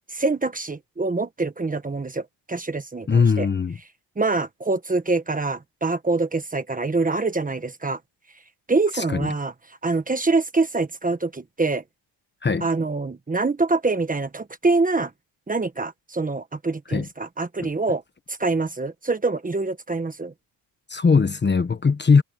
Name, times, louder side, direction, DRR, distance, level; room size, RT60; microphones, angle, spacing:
voice 1, 0.1-3.5 4.2-8.0 8.7-9.5 9.8-11.8 12.6-15.1 15.5-18.0 18.3-20.3, right 3 dB, 15° right, 1.4 m, -25 dB
voice 2, 3.1-3.8 8.9-9.3 12.4-12.7 16.9-17.1 20.9-22.2, left 5 dB, 20° left, 1.2 m, -20 dB
cardioid pair, 135°, 47 cm